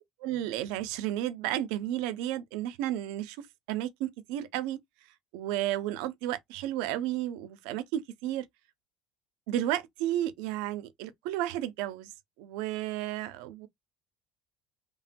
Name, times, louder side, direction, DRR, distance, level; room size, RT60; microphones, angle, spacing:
voice 1, 0.2-3.4 3.7-4.8 5.3-8.5 9.5-12.1 12.4-13.7, right 13 dB, 85° right, 0.5 m, -32 dB
3.3 x 2.2 x 2.5 m
cardioid pair, 170°, 0 cm